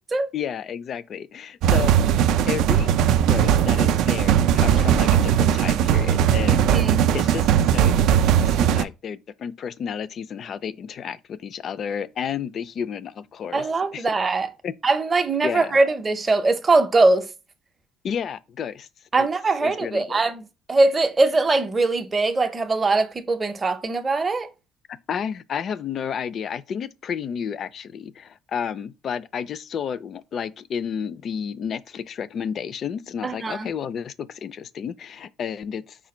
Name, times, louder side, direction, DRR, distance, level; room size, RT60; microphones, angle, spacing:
voice 1, 0.3-1.9 2.5-2.9 3.2-6.7 7.1-13.6 13.9-14.0 14.6-14.7 15.4-15.7 18.0-18.9 19.2-19.3 19.6-20.2 25.1-36.0, left 7 dB, 40° left, 0.3 m, -31 dB
sound 1, 1.6-8.8, right 9 dB, 70° right, 0.3 m, -19 dB
voice 2, 6.5-7.1 13.5-14.5 14.8-17.3 19.1-24.5 33.2-33.7, right 3 dB, 20° right, 0.6 m, -21 dB
4.9 x 2.2 x 4.2 m
cardioid pair, 145°, 0 cm